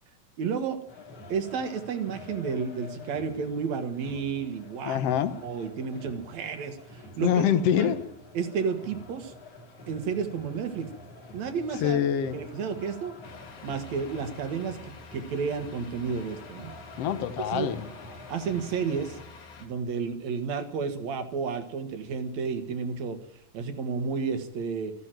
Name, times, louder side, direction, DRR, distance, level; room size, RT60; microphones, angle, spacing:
voice 1, 0.4-0.8 1.3-5.0 5.4-7.3 7.8-7.9 8.3-9.3 9.9-10.9 11.3-12.0 12.3-13.1 13.6-16.7 17.5-17.7 18.3-19.2 19.6-23.2 23.5-24.9, right 5 dB, 60° right, 2.5 m, -31 dB
sound 1, 0.9-19.2, left 1 dB, 50° left, 3.5 m, -47 dB
voice 2, 4.8-5.4 7.2-8.1 11.8-12.4 17.0-17.9, left 9 dB, 65° left, 1.6 m, -25 dB
Truck, 13.2-19.7, left 5 dB, 90° left, 4.1 m, -48 dB
14.0 x 11.0 x 9.1 m
omnidirectional pair, 4.0 m